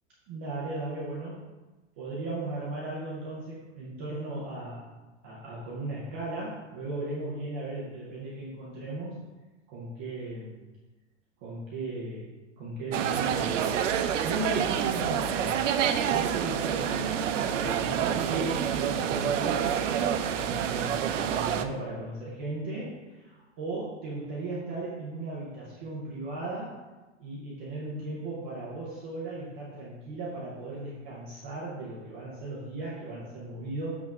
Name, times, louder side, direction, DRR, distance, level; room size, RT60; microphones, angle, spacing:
voice 1, 0.3-1.5 2.0-4.8 5.2-9.2 9.7-10.5 11.4-12.3 12.6-15.6 16.0-26.7 27.2-34.0, right 2 dB, 10° right, -6 dB, 0.3 m, -37 dB
sound 1, 12.9-21.7, right 8 dB, 80° right, 0.7 m, -28 dB
7.5 x 3.5 x 5.7 m, 1.2 s
supercardioid pair, 170°, 37 cm